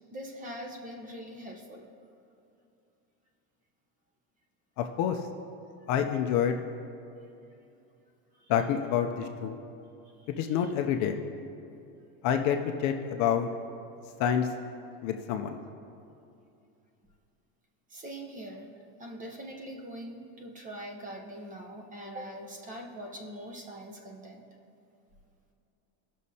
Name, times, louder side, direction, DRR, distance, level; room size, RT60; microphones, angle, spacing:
voice 1, 0.1-1.8 8.3-8.5 10.2-10.7 17.9-18.7 19.0-24.4, equal, 20° right, 2 dB, 0.7 m, -43 dB
voice 2, 4.8-5.2 5.9-6.6 8.5-9.6 10.3-11.2 12.2-13.5 14.2-14.5 15.0-15.6, left 8 dB, 45° left, 5 dB, 0.5 m, -27 dB
18.0 x 6.3 x 2.8 m, 2.6 s
cardioid pair, 155°, 42 cm